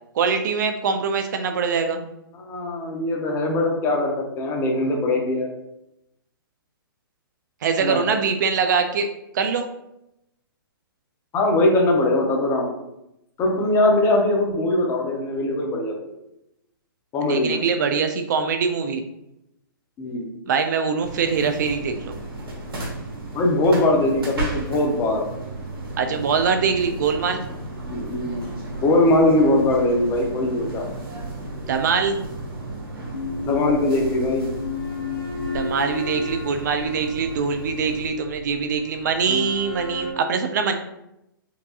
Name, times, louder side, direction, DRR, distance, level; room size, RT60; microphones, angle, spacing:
voice 1, 0.1-2.0 7.6-9.1 9.3-9.7 17.3-19.0 20.5-22.1 26.0-27.4 31.7-32.2 35.5-40.7, right 5 dB, 50° right, 7 dB, 0.4 m, -23 dB
voice 2, 2.3-5.5 7.8-8.0 11.3-12.7 13.4-15.9 17.1-17.6 20.0-20.3 23.3-25.2 27.9-28.5 28.8-30.8 33.4-34.5 39.3-39.4, left 2 dB, 20° left, 1 dB, 0.7 m, -21 dB
sound 1, 21.0-38.1, right 2 dB, 75° right, 1.3 m, -34 dB
sound 2, 33.1-40.1, left 5 dB, 65° left, 1.1 m, -33 dB
4.6 x 2.6 x 2.4 m, 0.85 s
hypercardioid pair, 135°, 12 cm